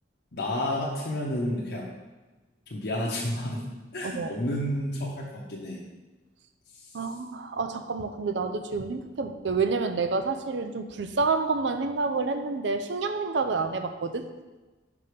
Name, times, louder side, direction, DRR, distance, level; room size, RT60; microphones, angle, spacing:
voice 1, 0.3-1.9 2.7-3.6 3.9-5.8 6.7-6.8, left 1 dB, 65° left, -4 dB, 0.9 m, -30 dB
voice 2, 6.9-14.3, right 4 dB, 75° right, 8 dB, 0.5 m, -28 dB
5.3 x 4.7 x 5.0 m, 1.2 s
head